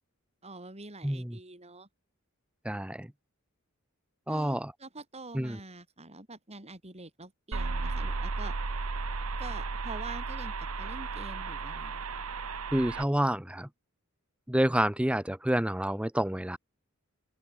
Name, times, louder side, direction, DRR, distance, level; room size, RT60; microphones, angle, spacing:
voice 1, 0.4-1.9 4.3-8.5 9.4-12.1, right 2 dB, 30° right, 5.6 m, -46 dB
voice 2, 1.0-1.4 2.6-3.1 4.3-4.7 5.3-5.6 12.7-13.7 14.5-16.6, right 1 dB, 5° right, 0.9 m, -28 dB
sound 1, 7.5-13.0, right 4 dB, 85° right, 1.1 m, -34 dB
open air
head